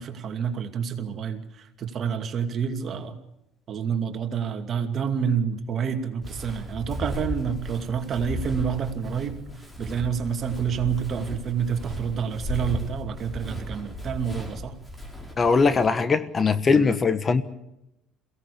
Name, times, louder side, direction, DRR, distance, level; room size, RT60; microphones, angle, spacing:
voice 1, 0.0-3.2 3.7-9.4 9.8-14.8 16.7-17.0, right 7 dB, 45° right, 2.5 m, -28 dB
Walk footsteps, 6.2-15.9, left 1 dB, 10° left, 4.2 m, -36 dB
voice 2, 15.4-17.4, left 4 dB, 30° left, 1.2 m, -20 dB
22.5 x 17.0 x 8.5 m
supercardioid pair, 85°, 0 cm